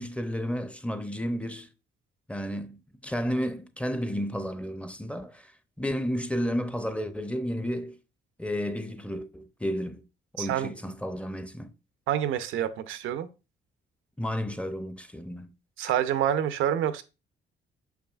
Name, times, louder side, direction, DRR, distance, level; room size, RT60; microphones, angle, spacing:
voice 1, 0.0-1.7 2.3-5.5 5.8-8.0 8.4-10.0 10.3-11.7 14.2-15.5, equal, 5° left, 0.6 m, -32 dB
voice 2, 10.4-10.7 12.1-13.3 15.8-17.0, right 10 dB, 90° right, 0.7 m, -27 dB
6.7 x 5.8 x 2.4 m
cardioid pair, 90°, 20 cm